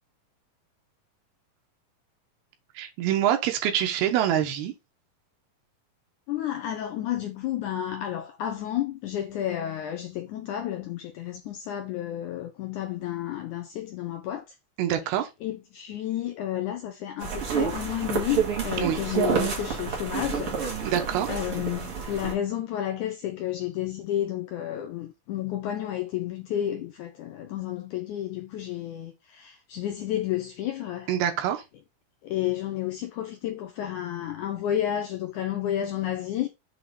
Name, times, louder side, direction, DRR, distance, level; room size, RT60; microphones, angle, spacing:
voice 1, 2.8-4.7 14.8-15.3 18.8-19.0 20.8-21.3 31.1-31.6, right 10 dB, 90° right, 3.0 m, -25 dB
voice 2, 6.3-14.4 15.4-20.6 21.3-31.1 32.2-36.5, left 11 dB, 80° left, 1.8 m, -31 dB
sound 1, 17.2-22.3, right 7 dB, 45° right, 2.2 m, -29 dB
7.6 x 3.2 x 5.5 m
omnidirectional pair, 4.4 m